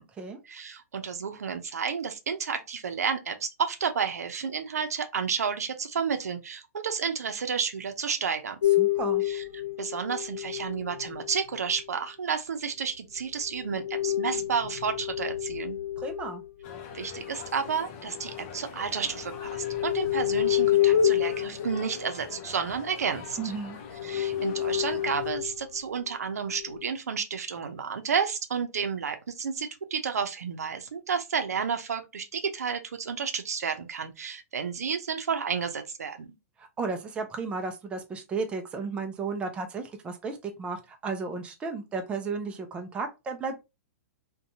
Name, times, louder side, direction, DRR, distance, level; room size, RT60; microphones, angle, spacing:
voice 1, 0.4-8.6 9.2-9.4 9.8-15.8 16.9-23.5 24.0-36.3, right 6 dB, 90° right, 0.6 m, -31 dB
sound 1, 8.6-11.8 13.5-18.6 19.0-23.4 23.8-25.6 26.4-26.9, left 11 dB, 75° left, 0.8 m, -29 dB
voice 2, 8.8-9.2 16.0-16.4 23.4-23.8 36.6-43.6, right 4 dB, 15° right, 0.4 m, -34 dB
sound 2, 16.6-25.3, left 5 dB, 40° left, 0.6 m, -45 dB
2.7 x 2.2 x 2.6 m
hypercardioid pair, 135°, 8 cm